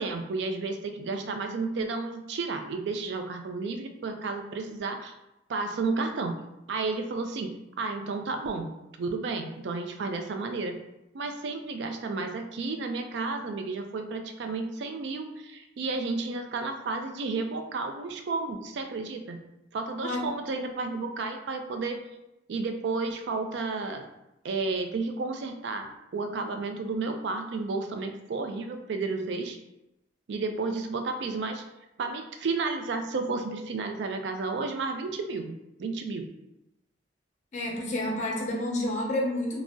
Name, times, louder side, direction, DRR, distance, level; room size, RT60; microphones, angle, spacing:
voice 1, 0.0-5.1 5.5-6.4 6.7-8.7 9.0-10.8 11.1-19.4 19.7-22.0 22.5-24.1 24.4-29.6 30.3-31.6 32.0-36.3, right 3 dB, 70° right, 5 dB, 0.4 m, -32 dB
voice 2, 37.5-39.6, left 1 dB, 40° left, -1 dB, 0.6 m, -29 dB
2.6 x 2.0 x 3.5 m, 0.90 s
head